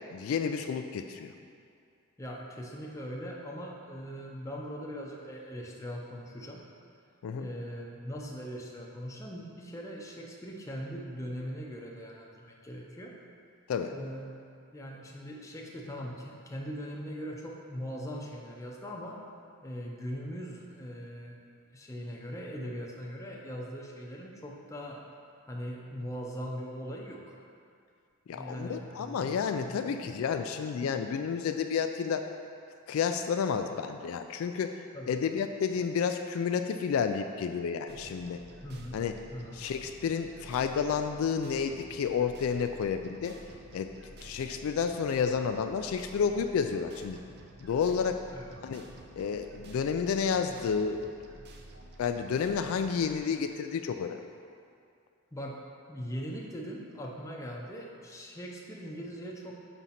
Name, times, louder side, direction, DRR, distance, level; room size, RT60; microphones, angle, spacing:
voice 1, 0.1-1.3 7.2-7.5 13.7-13.9 28.3-32.3 32.9-38.4 38.9-39.2 39.5-43.4 43.7-43.9 44.2-47.2 47.6-48.2 48.6-48.8 49.2-51.0 52.0-54.2, left 6 dB, 65° left, 7 dB, 0.3 m, -30 dB
voice 2, 2.2-6.6 7.4-13.1 13.9-14.3 14.7-19.2 19.6-21.4 21.7-25.0 25.4-27.4 28.3-30.2 34.9-35.1 38.6-39.0 39.3-39.6 48.3-48.5 55.3-55.6 55.9-59.5, equal, 15° left, -1 dB, 0.6 m, -40 dB
sound 1, 37.9-53.2, right 1 dB, 45° right, 0.5 m, -51 dB
6.1 x 4.0 x 5.7 m, 2.4 s
head